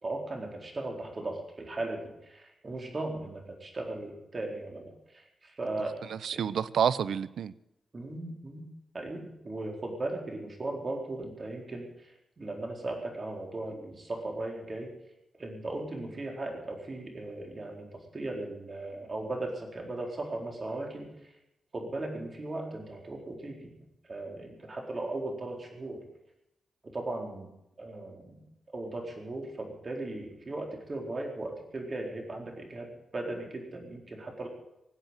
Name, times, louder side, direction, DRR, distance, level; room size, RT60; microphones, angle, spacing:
voice 1, 0.0-5.9 6.3-6.4 7.9-8.7 8.9-14.9 15.4-21.3 21.7-23.7 24.0-26.0 26.8-27.5 27.8-28.4 28.7-34.5, right 2 dB, 40° right, 2 dB, 4.2 m, -37 dB
voice 2, 6.0-7.5, right 8 dB, 80° right, 17 dB, 0.6 m, -29 dB
19.0 x 8.0 x 8.9 m, 0.87 s
cardioid pair, 85°, 0 cm